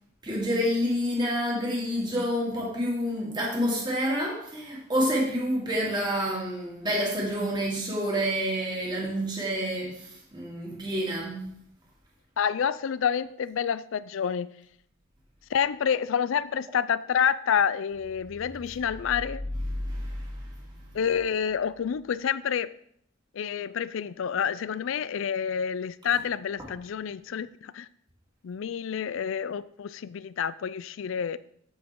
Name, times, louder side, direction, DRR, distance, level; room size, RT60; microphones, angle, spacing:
voice 1, 0.2-11.5 19.7-20.3, equal, 20° right, -4 dB, 2.5 m, -28 dB
voice 2, 12.4-14.5 15.5-19.4 20.9-22.7 23.3-27.9 28.4-31.4, left 7 dB, 65° left, 17 dB, 0.4 m, -28 dB
8.6 x 8.1 x 3.7 m, 0.69 s
head